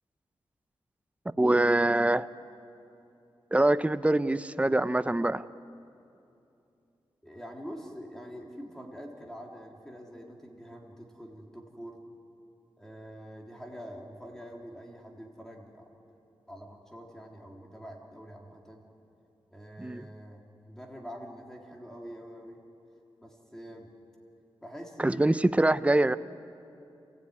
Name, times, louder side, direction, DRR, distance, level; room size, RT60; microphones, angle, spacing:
voice 1, 1.4-2.3 3.5-5.4 19.8-20.1 25.0-26.2, right 1 dB, 15° right, 14 dB, 0.6 m, -24 dB
voice 2, 7.2-12.0 12.8-15.9 16.5-18.8 19.5-22.6 23.2-23.9 24.6-25.4, equal, 5° left, -1 dB, 3.5 m, -45 dB
27.5 x 15.5 x 9.6 m, 2.7 s
wide cardioid pair, 105°, 10 cm